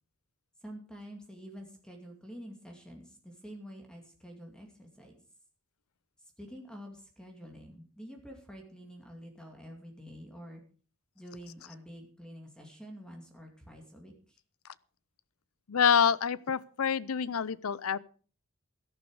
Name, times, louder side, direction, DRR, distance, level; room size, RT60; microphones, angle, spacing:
voice 1, 0.6-5.1 6.4-10.6 11.1-14.4, equal, 5° left, 2 dB, 2.4 m, -48 dB
voice 2, 15.7-18.0, left 7 dB, 80° left, 20 dB, 0.6 m, -27 dB
13.5 x 11.5 x 4.8 m, 0.41 s
head